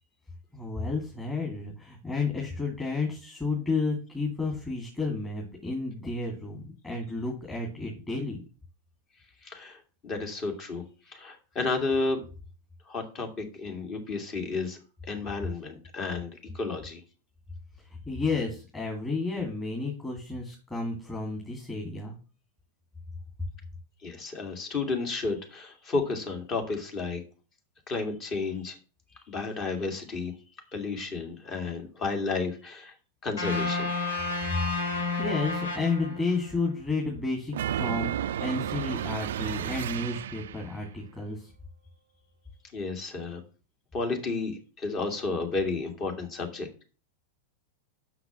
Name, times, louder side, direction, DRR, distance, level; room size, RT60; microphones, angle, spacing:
voice 1, 0.5-8.4 17.9-22.1 35.2-41.5, left 3 dB, 10° left, -2 dB, 2.4 m, -32 dB
voice 2, 9.4-12.2 12.9-14.8 15.1-17.0 24.0-27.2 27.9-28.8 29.3-30.3 30.7-32.9 33.2-33.9 42.7-43.4 43.9-46.7, left 3 dB, 35° left, 4 dB, 2.3 m, -32 dB
sound 1, 33.4-36.6, left 3 dB, 70° left, 2.0 m, -31 dB
sound 2, 37.5-40.7, right 10 dB, 60° right, 0.3 m, -32 dB
6.2 x 5.9 x 7.2 m, 0.36 s
figure-of-eight pair, 90°, 0 cm